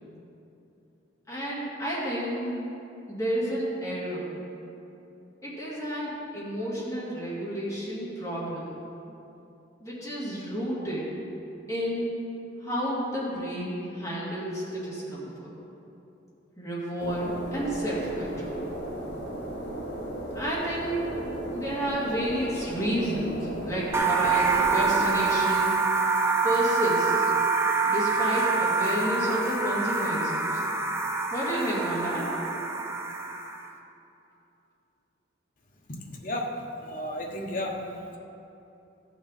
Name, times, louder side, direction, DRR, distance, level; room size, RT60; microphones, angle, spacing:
voice 1, 1.3-2.5 3.1-4.3 5.4-8.8 9.8-11.2 11.7-12.2 12.6-15.5 16.6-18.7 20.3-21.2 21.5-25.7 26.4-27.3 27.9-30.6 31.3-32.3, equal, 15° left, -8 dB, 2.4 m, -31 dB
sound 1, 17.0-25.2, right 1 dB, 80° left, 2.0 m, -36 dB
sound 2, 23.9-33.7, right 4 dB, 15° right, 0.6 m, -26 dB
voice 2, 35.9-36.5 36.8-37.7, left 1 dB, 45° left, -1 dB, 1.2 m, -33 dB
14.5 x 6.6 x 4.2 m, 2.8 s
head